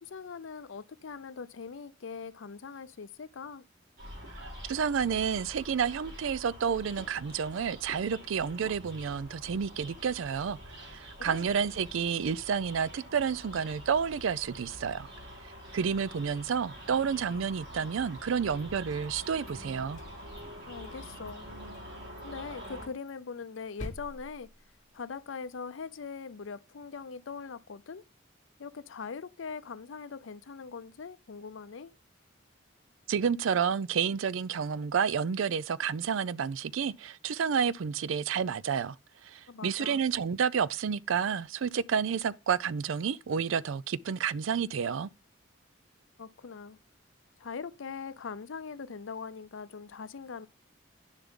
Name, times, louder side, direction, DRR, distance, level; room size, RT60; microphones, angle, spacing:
voice 1, 0.0-3.6 11.2-11.5 20.6-21.5 22.2-24.5 24.9-28.0 28.6-31.9 39.5-40.0 46.2-46.8 47.4-50.5, left 5 dB, 70° left, 0.5 m, -41 dB
sound 1, 4.0-22.9, equal, 55° right, 4.0 m, -46 dB
voice 2, 4.7-15.1 15.7-20.0 33.1-39.0 39.2-45.1, right 7 dB, 75° right, 0.4 m, -30 dB
sound 2, 18.3-19.5 19.9-21.0 21.3-21.4 21.7-21.9 22.2-22.3 22.6-25.2, left 1 dB, 40° left, 1.3 m, -48 dB
9.8 x 6.9 x 3.7 m
head